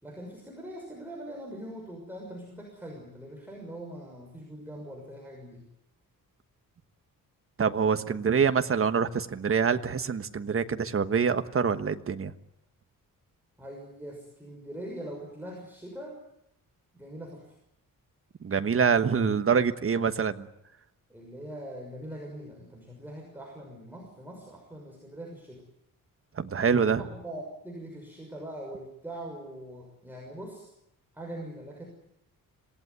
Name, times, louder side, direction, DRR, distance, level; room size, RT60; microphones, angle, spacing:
voice 1, 0.0-5.6 8.0-8.1 13.6-16.2 16.9-17.5 21.1-25.6 26.7-30.7 31.1-31.8, right 1 dB, 5° right, -1 dB, 6.3 m, -42 dB
voice 2, 7.6-12.3 18.4-20.5 26.4-27.0, right 6 dB, 40° right, 9 dB, 1.4 m, -25 dB
27.0 x 18.5 x 9.6 m, 0.80 s
wide cardioid pair, 140°, 34 cm